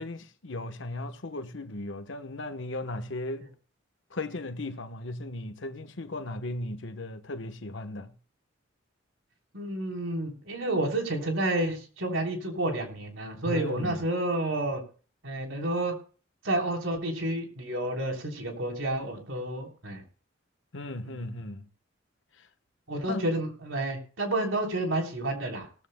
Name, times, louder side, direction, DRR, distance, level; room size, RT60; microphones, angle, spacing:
voice 1, 0.0-3.4 4.1-8.1 13.4-14.0 20.7-21.7 22.4-22.5 23.1-23.3, left 2 dB, 70° left, 1.1 m, -36 dB
voice 2, 9.5-14.8 15.2-15.9 16.4-20.0 21.0-21.3 22.9-25.7, right 1 dB, 90° right, 3.7 m, -30 dB
18.0 x 14.5 x 2.2 m
head